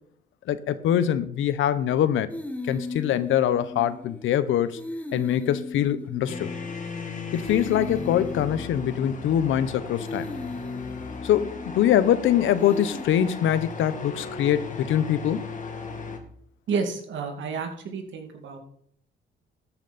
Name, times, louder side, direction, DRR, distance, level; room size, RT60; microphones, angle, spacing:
voice 1, 0.5-2.3 2.7-4.8 5.1-6.5 7.3-10.3 11.2-15.4, left 10 dB, 80° left, 0.9 m, -23 dB
sound 1, 2.3-4.4 4.7-7.0 7.3-9.6 10.0-12.2 12.6-13.1, left 2 dB, 5° left, 1.7 m, -37 dB
sound 2, 6.3-16.2, left 5 dB, 40° left, 2.4 m, -36 dB
voice 2, 16.7-18.6, right 5 dB, 70° right, 2.4 m, -30 dB
13.5 x 10.5 x 4.2 m
cardioid pair, 90°, 20 cm